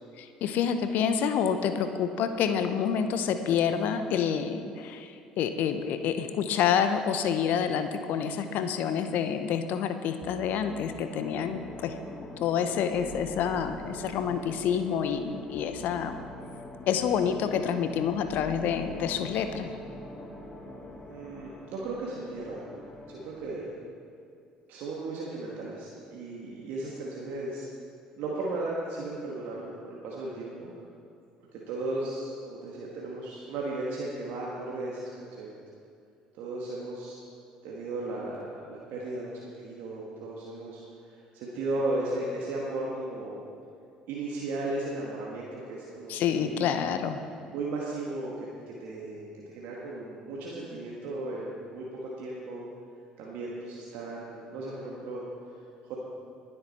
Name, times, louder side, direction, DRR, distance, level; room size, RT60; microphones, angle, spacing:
voice 1, 0.2-12.0 12.4-16.2 16.9-19.7 46.1-47.2, left 7 dB, 60° left, 9 dB, 0.8 m, -28 dB
sound 1, 10.2-23.5, left 2 dB, 25° left, 1.9 m, -44 dB
voice 2, 21.1-22.7 23.1-23.7 24.7-27.7 28.2-30.8 31.5-35.6 36.3-37.1 37.6-40.8 41.1-43.4 44.1-46.8 47.5-52.7 53.2-55.2 55.8-56.0, right 2 dB, 65° right, -4 dB, 1.8 m, -36 dB
20.5 x 7.9 x 4.3 m, 2.5 s
hypercardioid pair, 60°, 3 cm